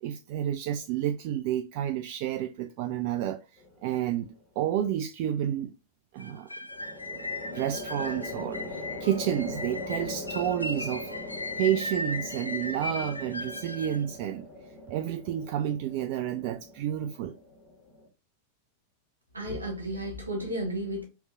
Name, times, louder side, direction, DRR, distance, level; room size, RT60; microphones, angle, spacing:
voice 1, 0.0-3.4 3.8-5.7 6.1-6.5 7.1-7.2 7.5-11.1 11.6-14.5 14.9-17.4, right 11 dB, 45° right, 0.3 m, -30 dB
sound 1, 3.6-4.2 6.7-18.1, left 2 dB, 15° left, 1.7 m, -41 dB
sound 2, 6.2-14.0, left 2 dB, 85° left, 0.4 m, -37 dB
voice 2, 19.3-21.0, right 1 dB, 80° right, 1.5 m, -33 dB
4.4 x 3.1 x 2.5 m
figure-of-eight pair, 90°, 0 cm